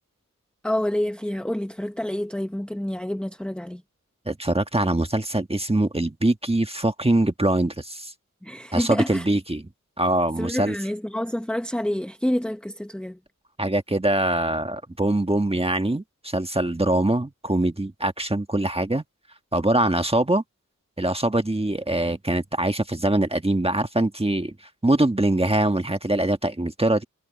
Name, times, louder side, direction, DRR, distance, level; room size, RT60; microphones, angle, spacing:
voice 1, 0.6-3.8 8.4-9.3 10.4-13.2, left 1 dB, 5° left, 1.0 m, -28 dB
voice 2, 4.3-8.1 8.7-9.7 10.0-10.7 13.6-19.0 19.5-20.4 21.0-24.5 24.8-27.0, right 1 dB, 20° right, 1.6 m, -23 dB
wide cardioid pair, 60°, 32 cm